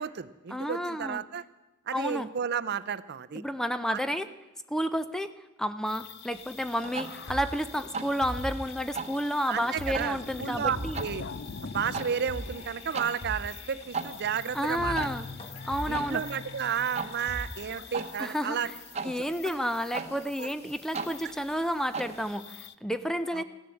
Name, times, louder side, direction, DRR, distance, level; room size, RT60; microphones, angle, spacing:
voice 1, 0.0-1.4 1.9-3.4 3.9-4.0 9.5-11.2 11.6-15.1 15.9-18.7 19.0-19.2 20.4-20.5 21.2-21.3 23.3-23.4, right 7 dB, 55° right, 14 dB, 0.5 m, -32 dB
voice 2, 0.5-1.2 1.9-2.3 3.3-4.3 4.7-5.3 5.6-11.0 14.5-15.3 15.6-16.2 18.2-18.6 19.0-23.4, equal, 5° left, 12 dB, 0.5 m, -31 dB
sound 1, 5.9-22.7, left 5 dB, 60° left, 0.6 m, -44 dB
sound 2, 6.3-22.3, right 4 dB, 35° right, 1.0 m, -41 dB
sound 3, 6.8-8.8 9.1-9.2 9.6-10.1 10.4-10.5 10.7-11.2 12.0-13.8 14.3-14.4 14.6-15.1 15.4-17.9, equal, 30° left, 1.4 m, -41 dB
15.5 x 10.5 x 7.7 m, 1.1 s
head